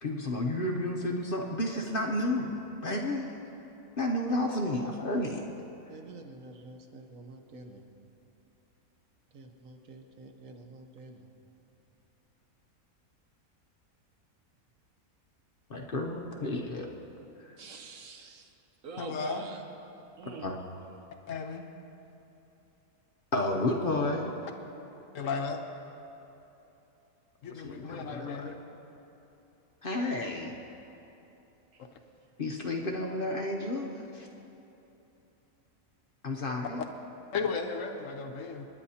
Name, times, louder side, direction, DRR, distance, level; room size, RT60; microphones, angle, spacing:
voice 1, 0.0-2.6 2.8-3.3 4.0-5.4 15.7-16.9 17.4-17.6 20.4-20.6 23.3-24.3 27.6-28.3 29.8-30.5 32.4-34.3 36.2-36.8, left 1 dB, 45° left, 1 dB, 0.9 m, -31 dB
voice 2, 5.9-7.9 9.3-11.3 17.6-18.5 18.8-19.6 20.2-20.5 31.7-31.9, right 3 dB, 65° right, 4 dB, 1.3 m, -46 dB
voice 3, 19.0-19.4 21.3-21.6 25.1-25.6 27.4-28.6 37.3-38.7, left 5 dB, 65° left, 5 dB, 1.1 m, -34 dB
26.0 x 10.0 x 2.8 m, 3.0 s
omnidirectional pair, 1.5 m